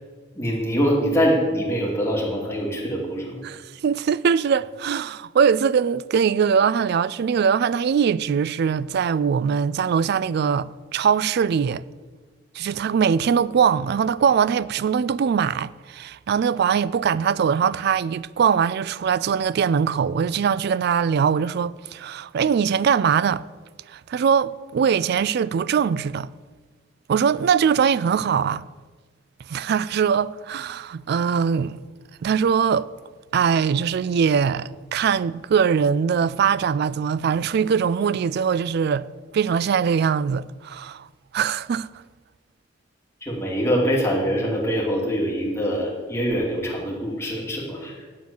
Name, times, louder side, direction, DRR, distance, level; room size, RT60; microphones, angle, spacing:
voice 1, 0.4-3.4 43.2-47.9, equal, 15° left, 2.4 m, -24 dB
voice 2, 3.4-11.8 12.6-23.5 23.9-26.3 27.1-28.7 29.5-31.8 32.2-32.9 33.3-39.1 39.3-41.1 41.3-41.9, right 7 dB, 60° right, 0.3 m, -22 dB
9.6 x 7.6 x 7.1 m
head